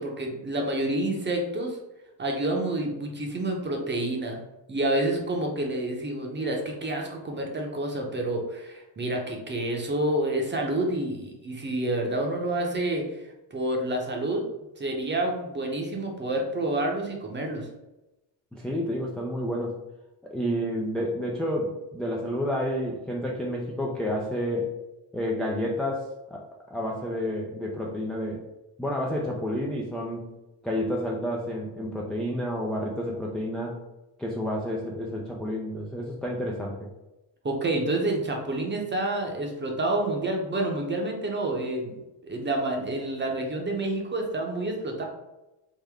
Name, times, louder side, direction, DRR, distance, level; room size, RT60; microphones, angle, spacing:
voice 1, 0.0-1.8 2.2-4.4 4.7-13.1 13.5-14.4 14.8-17.7 37.4-41.9 42.2-45.0, right 1 dB, 25° right, 1 dB, 0.8 m, -28 dB
voice 2, 18.5-19.8 20.2-24.7 25.1-26.4 26.7-28.4 28.8-30.3 30.6-33.8 34.2-36.9, equal, ahead, -3 dB, 0.3 m, -30 dB
3.6 x 2.1 x 3.4 m, 0.97 s
cardioid pair, 90°, 47 cm